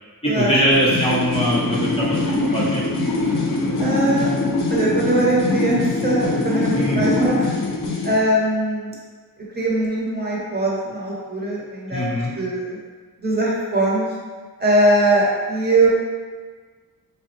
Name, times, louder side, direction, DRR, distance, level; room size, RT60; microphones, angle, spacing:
voice 1, 0.2-2.1 2.5-2.8 6.7-7.0 11.9-12.3, equal, 15° left, -7 dB, 0.6 m, -20 dB
sound 1, 0.7-8.2, left 2 dB, 60° left, 0.6 m, -23 dB
voice 2, 3.8-4.3 4.7-7.5 8.0-8.9 9.5-12.8 13.2-14.1 14.6-15.9, right 1 dB, 30° right, -5 dB, 0.8 m, -21 dB
3.4 x 3.0 x 3.1 m, 1.5 s
wide cardioid pair, 155°, 36 cm